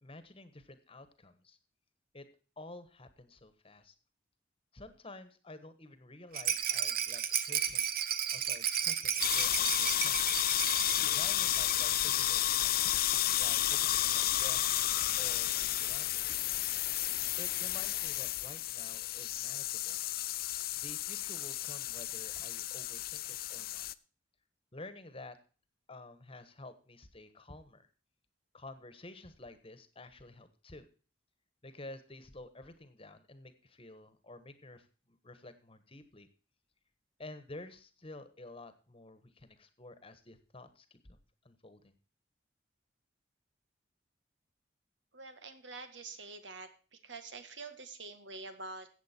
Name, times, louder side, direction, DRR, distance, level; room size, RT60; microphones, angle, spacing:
voice 1, 0.0-1.6 2.1-2.3 2.6-3.9 4.7-7.9 8.3-10.4 11.1-12.9 13.4-14.6 15.2-16.5 17.4-20.0 20.8-23.9 24.7-25.4 25.9-27.8 28.5-30.8 31.6-36.3 37.2-41.2 41.4-41.9, left 2 dB, 30° left, 11 dB, 1.4 m, -51 dB
Rattle, 6.3-12.0 12.3-12.4 12.7-12.8, right 9 dB, 50° right, 0.9 m, -34 dB
sound 1, 9.2-23.9, left 13 dB, 55° left, 0.5 m, -32 dB
voice 2, 45.1-48.9, right 3 dB, 75° right, 9 dB, 1.7 m, -46 dB
15.0 x 8.1 x 4.4 m, 0.37 s
head